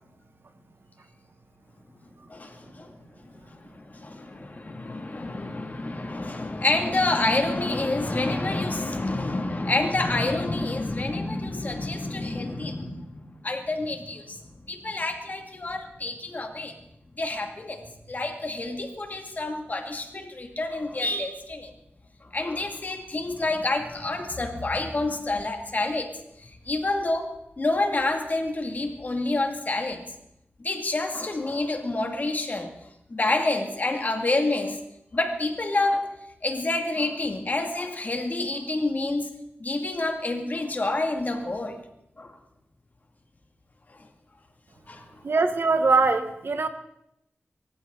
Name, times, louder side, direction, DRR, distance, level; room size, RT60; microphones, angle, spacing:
voice 1, 2.3-3.0 3.6-16.7 17.2-17.8 18.1-21.7 22.2-26.1 26.7-27.3 27.6-30.0 30.6-32.7 33.1-34.8 35.1-36.1 36.4-39.3 39.6-41.8 42.2-42.4 44.9-45.2, left 2 dB, 45° left, 4 dB, 2.5 m, -28 dB
voice 2, 45.2-46.7, right 4 dB, 65° right, 8 dB, 1.5 m, -22 dB
24.5 x 14.5 x 4.0 m, 0.80 s
wide cardioid pair, 80°, 4 cm